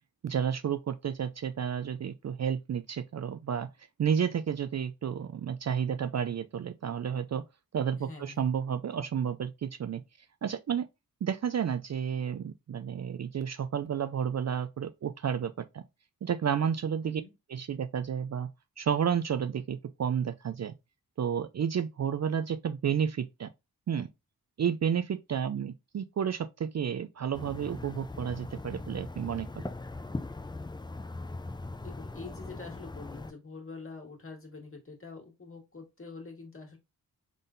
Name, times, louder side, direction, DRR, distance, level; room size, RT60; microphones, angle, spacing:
voice 1, 0.2-3.7 4.0-7.4 7.7-10.0 10.4-10.9 11.2-15.8 16.2-17.2 17.5-18.5 18.8-20.7 21.2-23.5 23.9-24.1 24.6-29.6, right 8 dB, 45° right, 0.4 m, -31 dB
voice 2, 8.0-8.5 17.0-17.3 31.8-36.8, left 4 dB, 35° left, 1.9 m, -45 dB
sound 1, 27.3-33.3, left 2 dB, 10° left, 0.4 m, -40 dB
3.8 x 3.7 x 2.6 m
cardioid pair, 40°, 37 cm